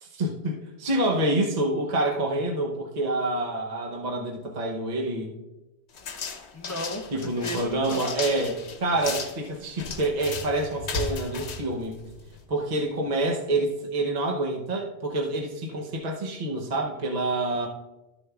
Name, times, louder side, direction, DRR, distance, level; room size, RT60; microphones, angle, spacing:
voice 1, 0.0-5.3 7.1-12.0 12.5-17.7, right 2 dB, 45° right, 1 dB, 0.9 m, -27 dB
sound 1, 5.9-12.5, left 4 dB, 80° left, 1.1 m, -35 dB
voice 2, 6.5-8.0 17.6-17.7, equal, 20° left, 2 dB, 0.5 m, -35 dB
12.5 x 6.6 x 2.3 m, 1.0 s
omnidirectional pair, 1.1 m